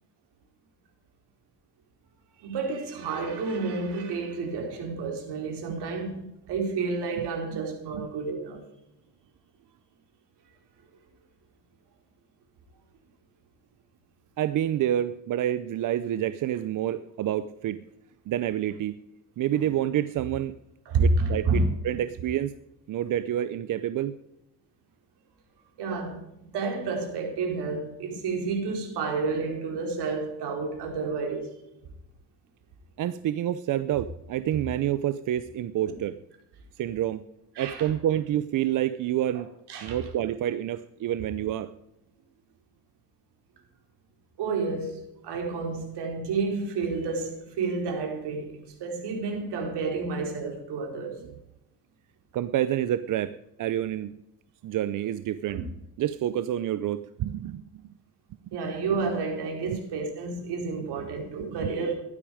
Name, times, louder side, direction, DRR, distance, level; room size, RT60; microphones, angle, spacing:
voice 1, 2.4-8.6 20.9-21.7 25.8-31.5 37.5-37.9 39.7-40.0 44.4-51.2 55.5-55.6 58.5-62.0, right 4 dB, 70° right, 4.6 m, -30 dB
voice 2, 14.4-17.8 18.3-18.9 19.4-20.5 21.0-22.5 22.9-24.1 33.0-36.1 36.8-37.2 37.6-39.5 39.8-41.7 52.3-53.3 53.6-54.1 54.6-55.6 56.0-57.9 59.7-59.8 61.4-61.7, right 11 dB, 50° right, 0.6 m, -28 dB
15.0 x 12.0 x 5.0 m
cardioid pair, 130°, 42 cm